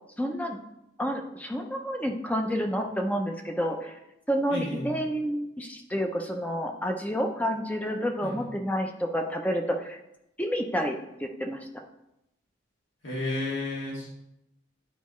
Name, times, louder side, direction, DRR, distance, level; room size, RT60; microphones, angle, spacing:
voice 1, 0.2-0.6 1.0-4.0 4.3-10.0 10.4-11.7, equal, 10° left, 3 dB, 0.5 m, -29 dB
voice 2, 4.5-4.9 8.2-8.5 13.0-14.2, left 2 dB, 80° left, -4 dB, 2.3 m, -32 dB
9.3 x 4.5 x 3.1 m, 0.86 s
head